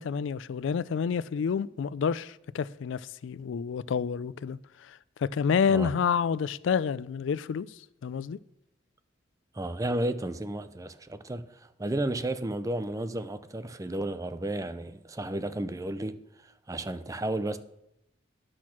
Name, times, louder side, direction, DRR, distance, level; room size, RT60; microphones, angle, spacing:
voice 1, 0.0-7.7 8.0-8.4, left 6 dB, 75° left, 0.3 m, -29 dB
voice 2, 9.5-17.6, right 1 dB, 15° right, 0.5 m, -33 dB
10.0 x 6.3 x 6.0 m
head